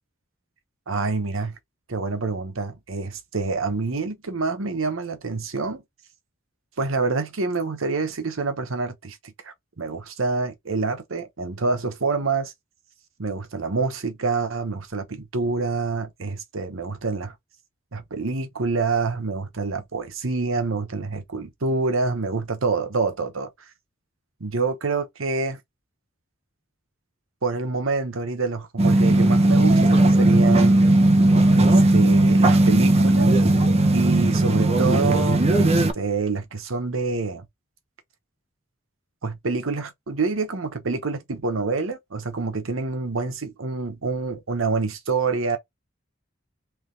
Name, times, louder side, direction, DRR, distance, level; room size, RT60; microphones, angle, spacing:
voice 1, 0.9-1.5 1.9-5.8 6.8-9.2 9.4-12.5 13.2-17.3 17.9-23.5 24.4-25.6 27.4-30.8 31.5-33.3 33.9-37.4 39.2-45.6, right 4 dB, 90° right, 1.0 m, -27 dB
sound 1, 28.8-35.9, right 1 dB, 30° right, 0.7 m, -17 dB
3.4 x 3.4 x 3.8 m
head